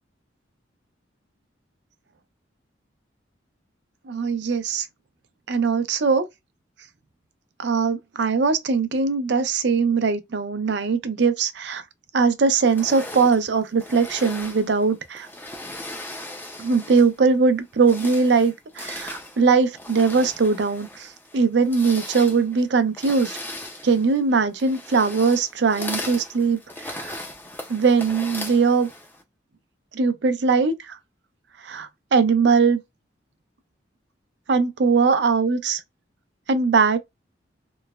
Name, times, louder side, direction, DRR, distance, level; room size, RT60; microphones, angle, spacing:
voice 1, 4.1-4.9 5.5-6.3 7.6-11.8 12.1-15.3 16.6-21.1 21.3-23.4 23.8-27.2 27.7-28.9 29.9-31.0 31.6-32.8 34.5-35.8 36.5-37.0, right 4 dB, 65° right, 0.5 m, -21 dB
sound 1, 12.6-17.2 17.7-29.2, left 1 dB, 10° left, 0.4 m, -38 dB
3.1 x 2.0 x 2.3 m
head